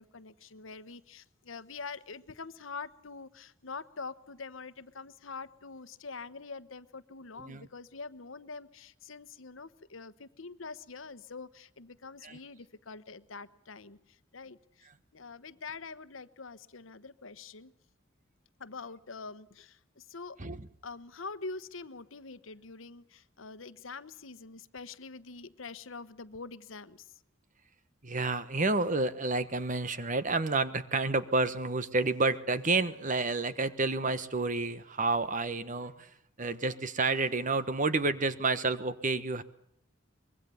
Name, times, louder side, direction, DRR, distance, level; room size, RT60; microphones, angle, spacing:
voice 1, 0.0-17.7 18.6-20.4 20.8-27.2, left 4 dB, 80° left, 15 dB, 1.1 m, -45 dB
voice 2, 28.0-36.1 36.4-39.4, right 3 dB, 40° right, 13 dB, 1.3 m, -30 dB
24.5 x 22.0 x 7.0 m, 0.75 s
head